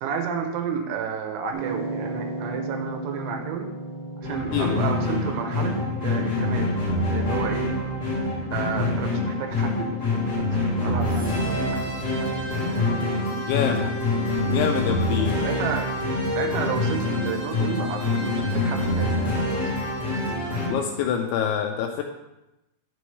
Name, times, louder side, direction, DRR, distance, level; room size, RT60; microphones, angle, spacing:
voice 1, 0.0-3.7 4.2-6.8 7.1-7.8 8.5-11.9 12.2-12.8 13.7-13.9 15.4-15.9 16.3-19.1 19.5-19.6, right 6 dB, 85° right, 4 dB, 3.1 m, -32 dB
sound 1, 1.5-19.8, right 2 dB, 65° right, 3.6 m, -39 dB
sound 2, 4.2-20.7, left 2 dB, 25° left, 3.0 m, -25 dB
voice 2, 4.5-4.8 13.5-13.9 14.5-15.5 20.7-22.0, left 8 dB, 85° left, 3 dB, 2.7 m, -25 dB
9.6 x 7.0 x 3.1 m, 0.96 s
omnidirectional pair, 5.7 m